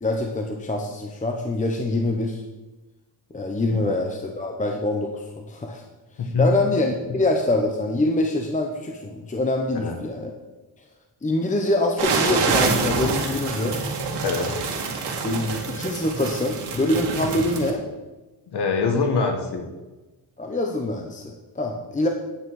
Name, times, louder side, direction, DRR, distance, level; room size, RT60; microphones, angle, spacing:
voice 1, 0.0-2.4 3.3-5.8 6.2-10.3 11.2-13.8 15.2-17.8 20.4-22.1, left 2 dB, 20° left, 3 dB, 0.7 m, -25 dB
voice 2, 6.2-6.5 9.7-9.9 14.2-14.5 17.4-17.5 18.5-19.6, left 4 dB, 70° left, 4 dB, 1.5 m, -24 dB
sound 1, 12.0-17.7, right 4 dB, 75° right, 2.0 m, -26 dB
9.6 x 8.2 x 4.7 m, 1.1 s
wide cardioid pair, 155°, 41 cm